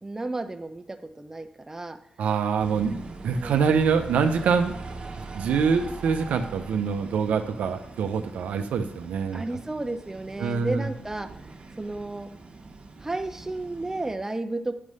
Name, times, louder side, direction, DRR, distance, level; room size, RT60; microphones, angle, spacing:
voice 1, 0.0-2.0 3.3-3.5 9.3-11.3 11.8-12.3 13.0-14.8, right 2 dB, 20° right, 7 dB, 0.6 m, -32 dB
voice 2, 2.2-4.8 5.3-9.4 10.4-10.9, right 6 dB, 80° right, 6 dB, 0.6 m, -25 dB
sound 1, 2.6-14.1, right 3 dB, 45° right, 1.2 m, -42 dB
8.4 x 3.2 x 5.4 m, 0.77 s
cardioid pair, 60°, 2 cm